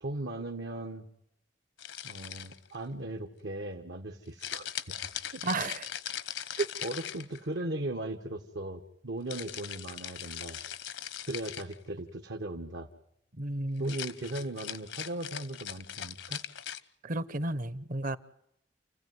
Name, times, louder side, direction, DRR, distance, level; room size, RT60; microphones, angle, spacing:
voice 1, 0.0-1.1 2.0-4.7 5.3-5.4 6.8-10.6 11.3-12.9 13.8-16.4, right 1 dB, 75° right, 1.4 m, -38 dB
sound 1, 1.8-2.8 4.4-7.6 9.3-11.8 13.8-16.8, left 10 dB, 80° left, 1.0 m, -40 dB
voice 2, 5.4-5.9 6.5-6.7 13.3-13.9 17.0-18.2, right 2 dB, 50° right, 1.0 m, -32 dB
29.5 x 15.5 x 9.5 m
head